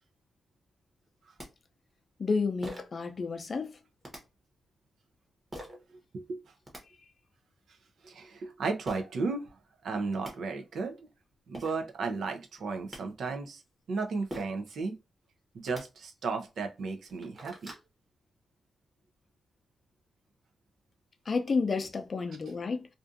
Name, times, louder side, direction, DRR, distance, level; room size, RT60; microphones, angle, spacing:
sound 1, 1.1-1.2 1.4-1.5 2.6-3.0 4.0-4.2 5.5-5.8 6.4-6.8 8.9-9.0 9.8-9.9 10.1-10.3 11.2-11.3 11.5-11.8 12.6-13.0 14.3-14.6 15.6-15.8 16.5-16.6 17.0-17.9, equal, 20° right, 1.0 m, -43 dB
voice 1, 2.2-3.8 21.3-22.9, left 4 dB, 45° left, 0.4 m, -31 dB
voice 2, 8.0-9.5 9.8-11.0 11.5-13.6 13.9-14.9 15.5-17.7 22.3-22.4, right 4 dB, 75° right, 0.5 m, -34 dB
2.5 x 2.4 x 2.5 m
cardioid pair, 95°, 0 cm